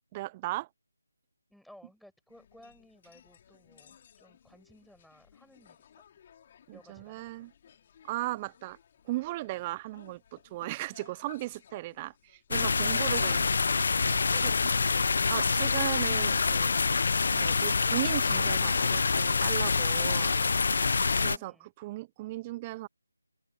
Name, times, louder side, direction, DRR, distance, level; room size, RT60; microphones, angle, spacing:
voice 1, 0.1-0.7 6.7-7.5 8.0-8.8 9.0-13.4 14.4-14.5 15.3-16.7 17.3-20.3 21.2-22.9, right 18 dB, 20° right, 0.4 m, -36 dB
voice 2, 1.5-6.0 6.7-7.3 20.8-21.7, equal, ahead, 7.1 m, -57 dB
sound 1, 2.3-18.6, left 8 dB, 30° left, 5.3 m, -59 dB
sound 2, 12.5-21.4, left 4 dB, 50° left, 0.4 m, -26 dB
open air
figure-of-eight pair, 160°, 0 cm